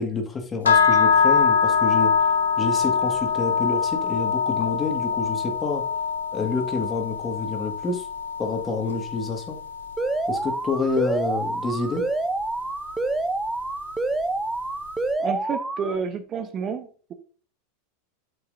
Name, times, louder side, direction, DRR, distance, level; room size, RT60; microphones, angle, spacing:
voice 1, 0.0-2.1 2.6-5.8 6.3-8.1 8.4-9.6 10.3-12.1, left 3 dB, 25° left, 3 dB, 1.9 m, -28 dB
sound 1, 0.6-10.7, left 6 dB, 85° left, 1.1 m, -23 dB
Alarm, 10.0-16.0, right 2 dB, 10° right, 0.7 m, -27 dB
voice 2, 15.2-17.1, right 6 dB, 35° right, 9 dB, 0.9 m, -30 dB
8.8 x 6.7 x 2.7 m, 0.41 s
hypercardioid pair, 95°, 0 cm